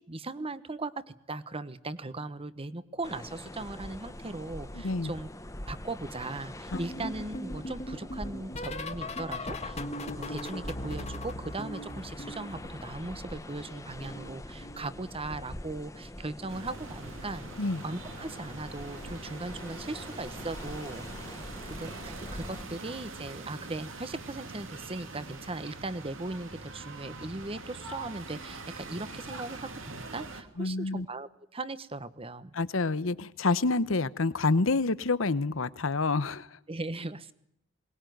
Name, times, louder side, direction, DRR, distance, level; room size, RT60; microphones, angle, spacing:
voice 1, 0.1-5.3 5.7-9.8 10.1-17.5 17.8-32.5 36.7-37.3, right 2 dB, 30° right, 14 dB, 1.2 m, -38 dB
sound 1, 3.0-22.6, left 1 dB, 15° left, 1.2 m, -44 dB
voice 2, 4.7-5.1 6.7-6.8 17.6-17.8 30.6-31.1 32.5-36.5, left 3 dB, 90° left, 16 dB, 1.0 m, -28 dB
sound 2, 6.7-13.5 13.8-15.4 16.4-16.7 17.0-17.3 18.9-19.1 19.5-19.7 21.3-21.4, left 1 dB, 35° left, 1.7 m, -40 dB
sound 3, 16.5-30.4, right 3 dB, 75° right, 2.8 m, -43 dB
22.5 x 20.0 x 9.4 m, 0.77 s
head